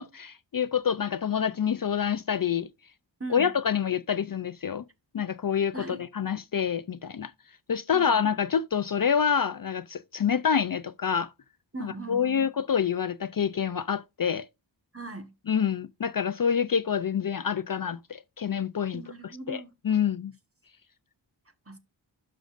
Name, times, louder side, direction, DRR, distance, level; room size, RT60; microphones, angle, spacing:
voice 1, 0.0-2.7 3.3-4.8 5.1-7.3 7.7-11.3 11.8-14.4 15.5-19.0 19.5-20.3, left 7 dB, 50° left, 0.5 m, -27 dB
voice 2, 3.2-3.5 5.7-6.0 7.9-8.2 11.7-12.5 14.9-15.3 18.9-19.7 21.7-21.8, right 2 dB, 30° right, 1.5 m, -39 dB
11.5 x 6.4 x 2.5 m
wide cardioid pair, 55°, 46 cm